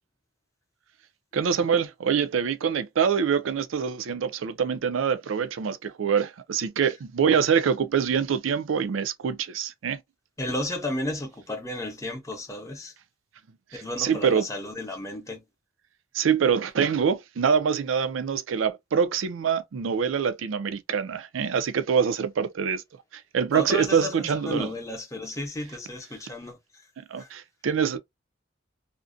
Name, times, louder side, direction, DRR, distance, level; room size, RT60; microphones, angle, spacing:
voice 1, 1.3-10.0 13.7-14.5 16.1-22.8 23.3-24.7 27.1-28.0, right 7 dB, 75° right, 0.4 m, -25 dB
voice 2, 10.4-12.9 13.7-15.4 23.5-26.6 27.2-27.3, left 1 dB, 15° left, 0.6 m, -33 dB
2.5 x 2.1 x 2.5 m
head